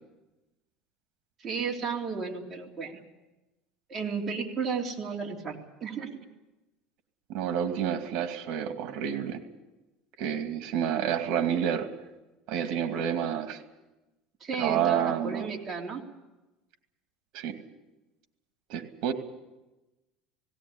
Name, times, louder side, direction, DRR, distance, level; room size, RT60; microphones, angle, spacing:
voice 1, 1.4-3.0 3.9-6.2 14.4-16.0, right 5 dB, 25° right, -1 dB, 3.2 m, -33 dB
voice 2, 7.3-9.4 10.2-11.9 12.5-13.6 14.6-15.5 17.3-17.6 18.7-19.1, right 9 dB, 60° right, 7 dB, 2.4 m, -29 dB
18.0 x 17.5 x 9.8 m, 1.1 s
cardioid pair, 145°, 0 cm